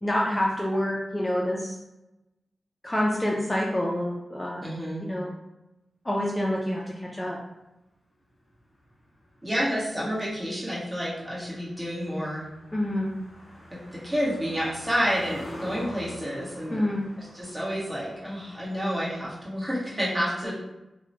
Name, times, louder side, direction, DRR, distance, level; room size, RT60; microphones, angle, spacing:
voice 1, 0.0-1.8 2.8-4.7 5.0-5.3 6.0-7.4 12.7-13.1 16.7-17.0 20.4-20.5, left 1 dB, 15° left, -3 dB, 0.4 m, -27 dB
voice 2, 4.6-5.0 9.4-12.4 13.9-16.8 17.3-20.5, equal, 20° right, -8 dB, 1.1 m, -29 dB
Car passing by, 8.3-19.5, equal, 35° left, 0.8 m, -46 dB
2.8 x 2.1 x 2.7 m, 0.97 s
cardioid pair, 70°, 0 cm